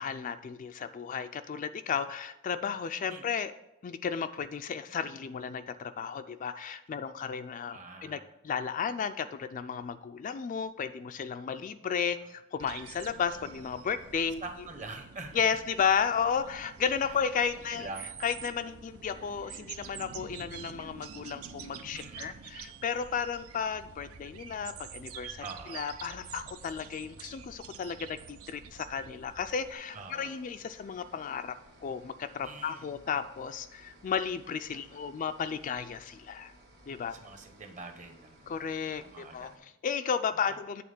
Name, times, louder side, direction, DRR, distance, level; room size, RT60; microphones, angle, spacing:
voice 1, 0.0-3.5 3.8-14.4 15.3-17.9 18.2-25.4 25.7-31.5 31.8-36.5 36.9-37.2 38.5-39.5 39.8-40.8, left 7 dB, 40° left, 10 dB, 0.3 m, -33 dB
voice 2, 7.7-8.3 14.4-15.4 17.0-17.2 17.7-18.1 21.9-22.4 25.4-25.9 29.9-30.4 32.4-32.9 34.7-35.0 37.1-38.7 39.0-39.7 40.5-40.6, right 3 dB, 35° right, 6 dB, 0.9 m, -45 dB
sound 1, 12.6-29.7, right 7 dB, 85° right, 0.6 m, -47 dB
sound 2, 29.7-39.6, right 1 dB, 55° right, 1.4 m, -58 dB
8.6 x 3.6 x 6.7 m, 0.88 s
head